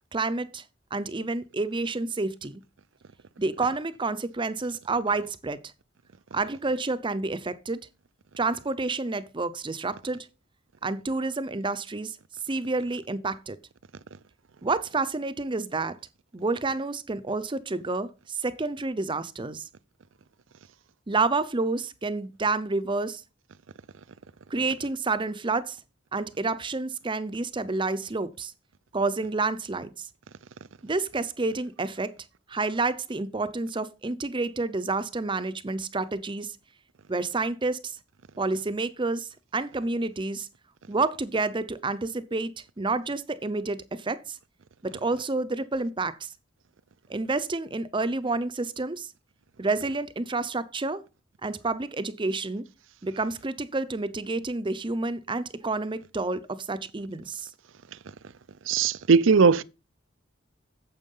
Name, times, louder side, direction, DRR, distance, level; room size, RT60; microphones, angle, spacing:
voice 1, 0.1-0.6 0.9-2.6 3.4-5.6 6.3-7.9 8.4-10.3 10.8-12.2 12.5-13.6 14.6-16.0 16.3-19.7 21.1-23.2 24.5-25.8 26.1-28.5 28.9-30.1 30.8-32.1 32.5-36.6 37.1-38.0 38.4-40.5 40.9-44.4 44.8-46.3 47.1-49.1 49.6-51.0 51.4-52.6 53.0-57.5, right 3 dB, 25° right, 0.7 m, -29 dB
voice 2, 58.7-59.6, right 5 dB, 90° right, 0.6 m, -19 dB
9.1 x 7.4 x 5.5 m
head